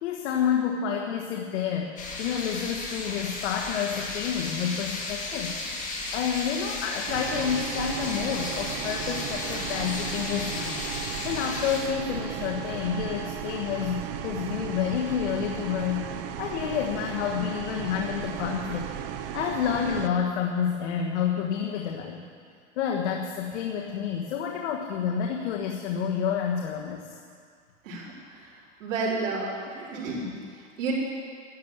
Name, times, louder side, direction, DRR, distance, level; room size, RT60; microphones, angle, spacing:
voice 1, 0.0-5.9 6.1-10.8 11.2-16.1 16.4-18.9 19.3-22.2 22.8-27.2, left 8 dB, 65° left, 0 dB, 1.4 m, -29 dB
sound 1, 2.0-11.8, left 3 dB, 20° left, 1.8 m, -34 dB
sound 2, 7.1-20.1, right 9 dB, 35° right, 0.6 m, -35 dB
voice 2, 27.8-30.9, right 3 dB, 90° right, -10 dB, 4.2 m, -32 dB
12.0 x 11.5 x 7.9 m, 2.1 s
supercardioid pair, 165°, 37 cm